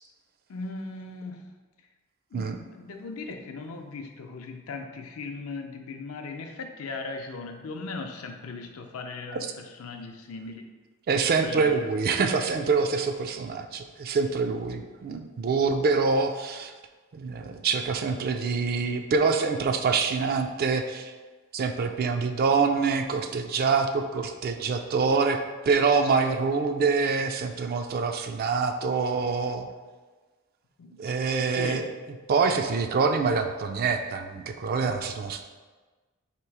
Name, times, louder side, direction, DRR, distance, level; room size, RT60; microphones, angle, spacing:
voice 1, 0.5-1.5 2.3-10.7 11.4-11.9 30.8-30.9 31.5-31.9, left 3 dB, 75° left, 4 dB, 0.5 m, -38 dB
voice 2, 11.1-16.7 17.1-21.1 21.5-25.4 25.7-29.7 31.0-31.9 32.3-35.4, right 4 dB, 45° right, 6 dB, 0.3 m, -25 dB
3.1 x 3.0 x 4.6 m, 1.3 s
head